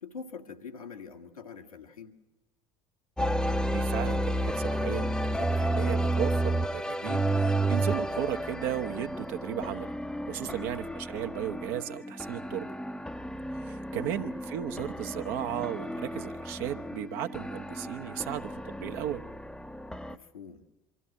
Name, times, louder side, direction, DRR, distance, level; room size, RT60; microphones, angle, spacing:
voice 1, 0.0-2.1 10.4-10.7 13.9-14.4 20.1-20.6, left 6 dB, 80° left, 2 dB, 1.7 m, -44 dB
sound 1, 3.2-20.1, right 1 dB, 5° left, 0.8 m, -32 dB
voice 2, 3.7-9.9 10.3-12.7 13.6-19.2, right 11 dB, 60° right, 7 dB, 1.2 m, -35 dB
24.5 x 14.0 x 8.8 m, 1.1 s
figure-of-eight pair, 60°, 18 cm